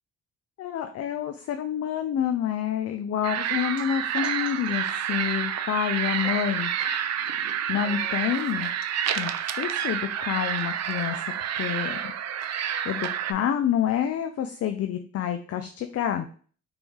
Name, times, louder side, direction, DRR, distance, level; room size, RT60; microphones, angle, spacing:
voice 1, 0.6-6.7 7.7-8.7 9.2-11.2 11.5-12.1 12.6-16.3, left 9 dB, 55° left, 7 dB, 0.5 m, -28 dB
sound 1, 3.2-3.3 3.8-3.9 4.2-4.9 6.2-6.7 7.8-8.9 9.9-10.0 10.8-10.9, left 2 dB, 5° right, 2.2 m, -47 dB
sound 2, 3.2-13.3, right 9 dB, 60° right, 0.5 m, -29 dB
4.0 x 3.4 x 3.5 m, 0.43 s
cardioid pair, 90°, 30 cm